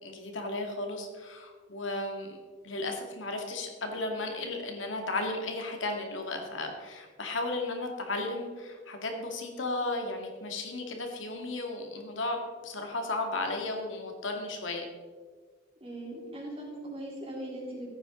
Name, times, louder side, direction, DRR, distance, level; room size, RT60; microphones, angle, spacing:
voice 1, 0.0-14.9, left 2 dB, 85° left, 3 dB, 2.0 m, -34 dB
voice 2, 15.8-17.9, right 1 dB, 30° right, -4 dB, 3.6 m, -40 dB
15.0 x 9.0 x 3.7 m, 1.5 s
head